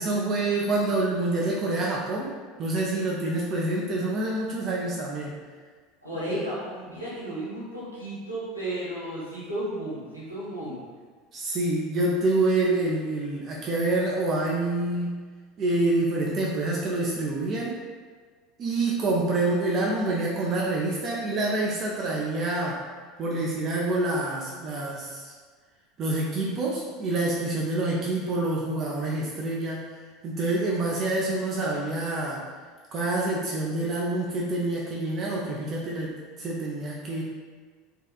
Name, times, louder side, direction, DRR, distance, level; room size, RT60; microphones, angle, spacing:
voice 1, 0.0-2.3 2.6-5.3 6.3-6.4 11.3-15.2 15.6-17.8 18.6-22.8 23.2-25.3 26.0-29.9 30.2-32.4 32.9-37.2, right 2 dB, 35° right, -3 dB, 0.3 m, -27 dB
voice 2, 6.0-10.8, right 1 dB, 85° right, -11 dB, 1.0 m, -34 dB
2.7 x 2.2 x 2.3 m, 1.5 s
figure-of-eight pair, 75°, 0 cm